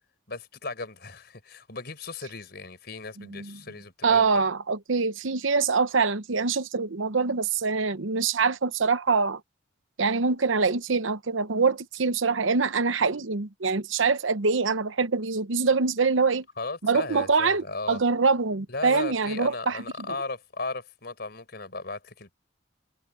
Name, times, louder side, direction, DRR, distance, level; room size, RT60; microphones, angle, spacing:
voice 1, 0.3-4.4 16.6-18.0 18.7-22.3, left 3 dB, 55° left, 4.9 m, -36 dB
voice 2, 3.2-3.6 4.0-9.4 10.0-16.4 16.8-19.8, right 4 dB, 85° right, 0.9 m, -24 dB
head